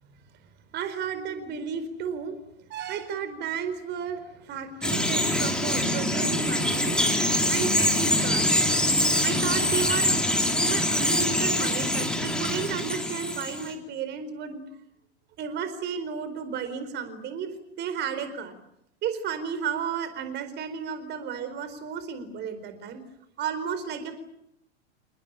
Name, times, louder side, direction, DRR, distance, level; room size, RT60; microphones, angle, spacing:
voice 1, 0.7-2.4 2.7-8.6 9.2-10.2 10.5-14.6 15.4-18.6 19.0-23.0 23.4-24.1, right 7 dB, 30° right, 11 dB, 4.5 m, -33 dB
Bird vocalization bird call bird song, 4.8-13.7, left 1 dB, ahead, 3.9 m, -24 dB
29.0 x 20.5 x 9.0 m, 0.79 s
figure-of-eight pair, 95°, 34 cm